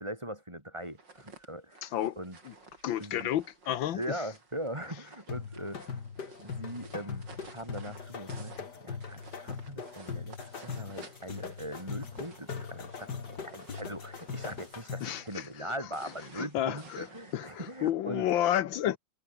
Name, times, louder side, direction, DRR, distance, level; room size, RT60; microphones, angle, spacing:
voice 1, 0.0-1.8 2.2-2.4 3.0-3.3 3.9-5.8 6.4-10.4 10.6-18.3, right 1 dB, 15° right, 4.8 m, -40 dB
sound 1, 0.8-17.9, right 3 dB, 65° right, 5.0 m, -54 dB
voice 2, 1.8-2.2 2.4-2.5 2.8-4.2 15.0-15.7 16.3-17.1 17.3-19.0, left 11 dB, 75° left, 1.6 m, -31 dB
sound 2, 5.3-15.2, left 6 dB, 55° left, 2.7 m, -40 dB
omnidirectional pair, 2.1 m